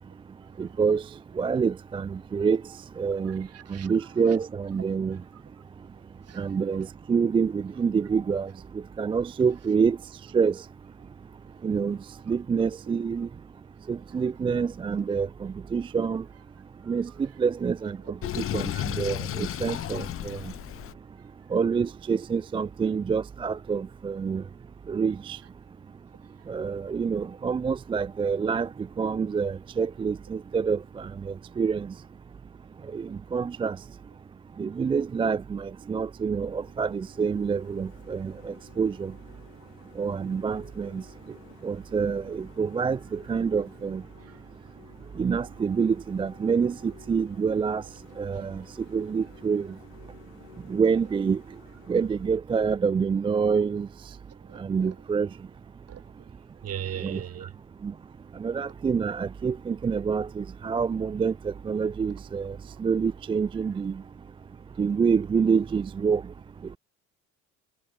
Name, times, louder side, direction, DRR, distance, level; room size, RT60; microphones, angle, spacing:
voice 1, 0.6-1.0 1.4-2.6 3.0-5.2 6.4-8.5 9.0-10.0 10.3-10.6 11.6-12.0 12.3-13.3 13.9-16.2 16.9-20.4 21.5-24.4 24.9-25.4 26.5-28.7 29.0-31.9 32.9-33.8 34.6-39.1 40.0-41.0 41.6-44.0 45.2-47.8 48.2-48.6 48.9-49.7 50.7-51.4 51.9-53.9 54.6-55.3 57.0-57.2 57.8-57.9 58.4-64.0 64.8-66.2, right 6 dB, 15° right, 0.4 m, -27 dB
voice 2, 3.4-3.9 6.3-6.4 12.3-12.4 16.8-16.9 44.2-44.4 48.3-48.6 54.3-54.9 55.9-56.3 56.6-57.5, right 10 dB, 35° right, 1.6 m, -39 dB
Sink (filling or washing), 18.2-21.0, left 12 dB, 35° left, 0.7 m, -33 dB
sound 1, 36.1-52.3, left 16 dB, 70° left, 2.7 m, -55 dB
sound 2, 55.4-55.7 56.4-56.5 56.7-57.4 57.6-58.7 59.0-59.1 59.4-60.1 60.5-61.3 61.8-63.0 63.5-65.4, right 25 dB, 60° right, 7.3 m, -66 dB
figure-of-eight pair, 60°, 41 cm